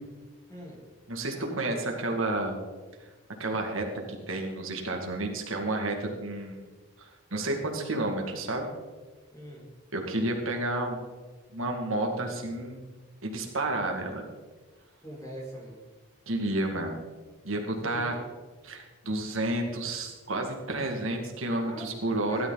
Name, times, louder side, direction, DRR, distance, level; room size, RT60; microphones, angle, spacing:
voice 1, 0.5-0.8 1.3-1.9 9.3-9.7 15.0-15.8 17.8-18.3 21.5-22.5, right 1 dB, 15° left, -4 dB, 4.3 m, -42 dB
voice 2, 1.1-2.6 3.4-6.6 7.0-8.7 9.9-11.0 11.5-12.8 13.2-14.2 16.3-17.0 17.4-18.1 18.6-22.5, right 2 dB, 70° right, 2 dB, 2.2 m, -31 dB
16.5 x 12.0 x 4.0 m, 1.3 s
head